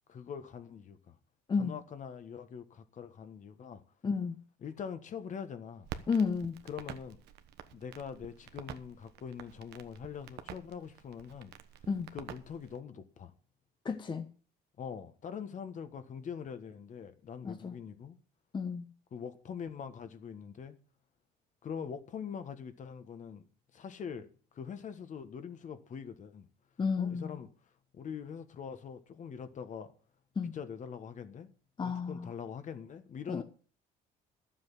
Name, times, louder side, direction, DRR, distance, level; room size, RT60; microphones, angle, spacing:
voice 1, 0.1-1.1 1.6-3.8 4.6-5.9 6.6-7.2 7.7-11.5 12.1-13.3 14.8-18.2 19.1-20.8 21.6-23.4 23.7-24.3 24.5-26.5 27.0-27.5 27.9-29.9 30.5-31.5 31.8-33.4, left 7 dB, 45° left, 1.5 m, -43 dB
voice 2, 4.0-4.4 6.1-6.5 11.9-12.1 13.8-14.3 17.4-17.7 18.5-18.9 26.8-27.4 30.4-30.6 31.8-32.3 33.3-33.4, left 5 dB, 25° left, 1.1 m, -32 dB
Crackle, 5.8-12.8, right 10 dB, 80° right, 1.2 m, -48 dB
11.5 x 7.6 x 7.4 m
cardioid pair, 110°, 17 cm